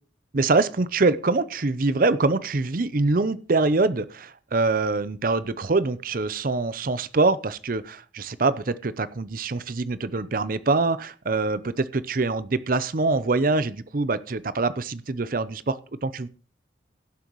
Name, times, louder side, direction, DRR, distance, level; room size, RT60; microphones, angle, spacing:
voice 1, 0.3-16.3, right 3 dB, 50° right, 15 dB, 0.6 m, -24 dB
16.5 x 7.7 x 3.1 m, 0.40 s
head